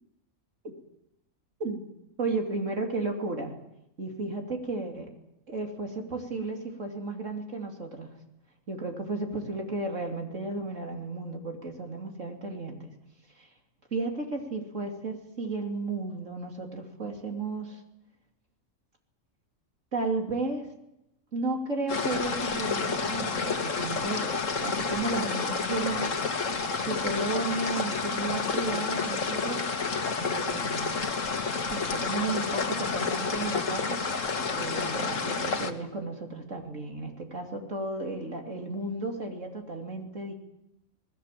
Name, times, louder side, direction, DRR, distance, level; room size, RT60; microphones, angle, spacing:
voice 1, 2.2-3.5 4.0-5.1 5.5-8.1 8.7-12.9 13.4-13.5 13.9-17.8 19.9-20.7 21.3-26.1 26.7-29.7 30.2-30.9 31.7-34.0 34.5-40.3, right 3 dB, 65° right, 2 dB, 3.6 m, -33 dB
sound 1, 21.9-35.7, left 4 dB, 65° left, 2.0 m, -30 dB
27.5 x 19.5 x 7.8 m, 0.85 s
omnidirectional pair, 1.4 m